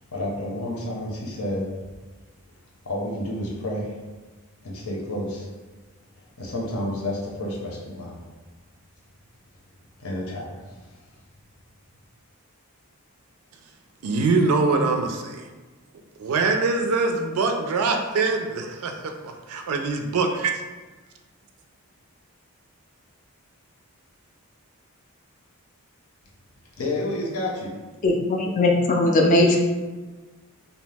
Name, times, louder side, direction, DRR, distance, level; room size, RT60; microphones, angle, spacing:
voice 1, 0.1-1.7 2.8-4.0 4.6-5.5 6.4-8.2 10.0-10.6 26.8-27.7, left 1 dB, 75° left, -2 dB, 0.7 m, -30 dB
voice 2, 14.0-15.5 16.2-20.6, right 3 dB, 75° right, 4 dB, 0.4 m, -23 dB
voice 3, 28.0-29.6, left 2 dB, 35° left, 1 dB, 0.3 m, -19 dB
2.7 x 2.0 x 3.3 m, 1.3 s
head